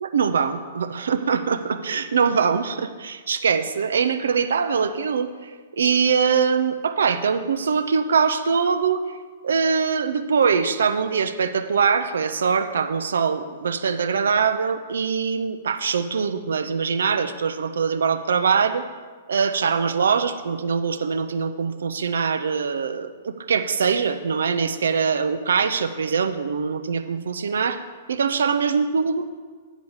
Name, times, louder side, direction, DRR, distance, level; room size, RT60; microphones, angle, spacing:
voice 1, 0.0-9.0 9.4-18.9 19.3-27.8 28.1-29.3, right 6 dB, 65° right, 9 dB, 0.6 m, -23 dB
9.2 x 5.1 x 7.0 m, 1.5 s
figure-of-eight pair, 110°, 0 cm